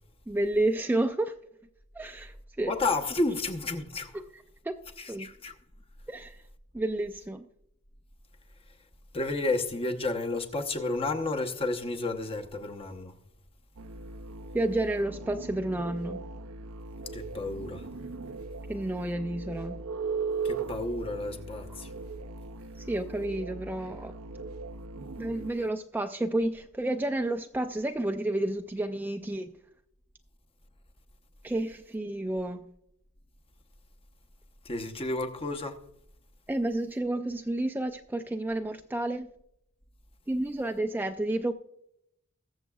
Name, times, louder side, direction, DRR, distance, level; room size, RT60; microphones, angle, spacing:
voice 1, 0.3-1.3 1.9-2.7 4.6-4.8 5.1-5.3 6.1-6.4 6.7-7.5 14.5-16.2 18.7-19.8 22.8-24.1 25.2-29.5 31.4-32.7 36.5-39.3 40.3-41.5, right 1 dB, 10° right, 0.3 m, -30 dB
voice 2, 2.7-4.2 5.0-5.5 9.1-13.1 17.1-17.9 20.4-21.9 34.6-35.8, left 2 dB, 30° left, 0.9 m, -31 dB
sound 1, 13.8-25.5, right 4 dB, 85° right, 0.5 m, -38 dB
21.5 x 7.2 x 2.3 m
head